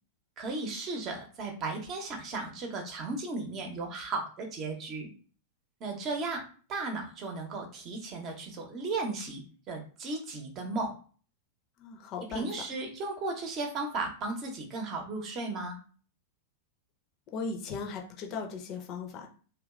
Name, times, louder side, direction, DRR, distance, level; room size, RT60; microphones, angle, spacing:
voice 1, 0.4-5.1 5.8-6.4 6.7-9.4 9.7-10.9 12.3-15.8, right 3 dB, 35° right, 2 dB, 0.8 m, -35 dB
voice 2, 11.8-12.5 17.3-19.3, left 4 dB, 40° left, 3 dB, 0.6 m, -37 dB
2.9 x 2.4 x 2.4 m, 0.40 s
figure-of-eight pair, 95°, 0 cm